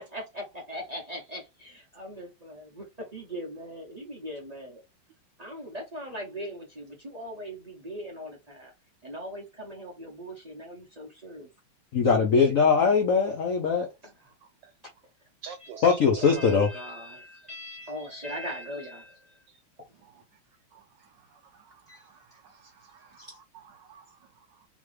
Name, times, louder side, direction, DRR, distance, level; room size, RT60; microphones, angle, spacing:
voice 1, 0.0-4.8 5.4-8.7 9.0-11.5 14.0-14.1 15.6-19.4 21.9-22.0 23.2-23.4, equal, 40° right, 0.5 m, -40 dB
voice 2, 11.9-13.9 15.8-16.7, left 5 dB, 75° left, 0.7 m, -21 dB
voice 3, 15.4-16.3 19.5-19.6 20.7-24.7, right 6 dB, 75° right, 1.0 m, -49 dB
3.6 x 3.1 x 3.2 m
omnidirectional pair, 2.4 m